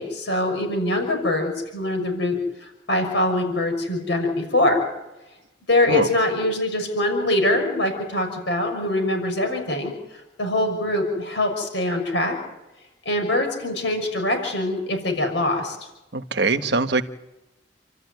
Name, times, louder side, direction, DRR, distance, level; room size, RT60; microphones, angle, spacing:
voice 1, 0.0-4.8 5.7-9.9 10.4-12.4 13.0-15.8, left 1 dB, 70° left, 4 dB, 6.1 m, -23 dB
voice 2, 16.1-17.0, right 3 dB, 65° right, 9 dB, 1.3 m, -22 dB
29.5 x 13.0 x 9.5 m, 0.98 s
head